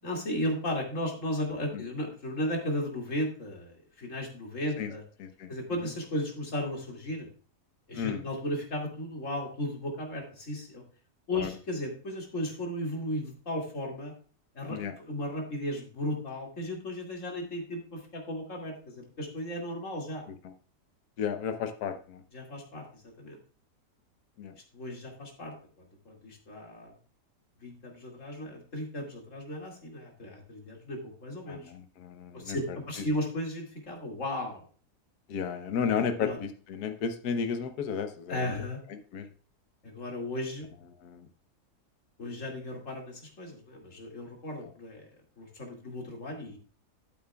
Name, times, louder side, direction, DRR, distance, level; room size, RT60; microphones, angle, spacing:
voice 1, 0.0-5.0 5.5-7.3 7.9-10.8 11.3-14.1 14.5-20.2 22.3-23.4 24.7-25.5 26.1-26.9 27.6-31.7 32.3-34.7 36.2-36.4 38.3-38.8 39.8-40.7 42.2-45.1 45.4-46.6, left 1 dB, 50° left, 0 dB, 2.8 m, -35 dB
voice 2, 21.2-22.2 24.4-24.5 31.5-32.6 35.3-38.4 39.1-39.3 41.0-41.3, left 6 dB, 75° left, 7 dB, 1.4 m, -33 dB
12.5 x 8.9 x 2.3 m, 0.40 s
omnidirectional pair, 1.7 m